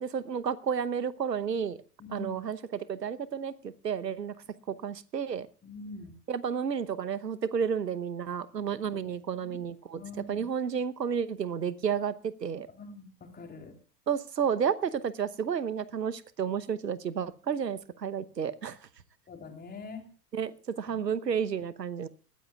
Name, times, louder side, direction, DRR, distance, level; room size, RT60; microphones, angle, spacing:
voice 1, 0.0-1.8 2.1-4.3 4.7-5.5 6.3-10.0 10.3-12.7 14.1-18.8 20.3-20.5 20.8-22.1, right 7 dB, 85° right, 17 dB, 1.0 m, -31 dB
voice 2, 2.0-2.4 5.6-6.1 9.4-9.5 9.9-10.5 12.8-13.7 19.3-20.1, left 3 dB, 20° left, 3 dB, 3.4 m, -44 dB
20.5 x 15.0 x 2.4 m, 0.37 s
figure-of-eight pair, 90°, 48 cm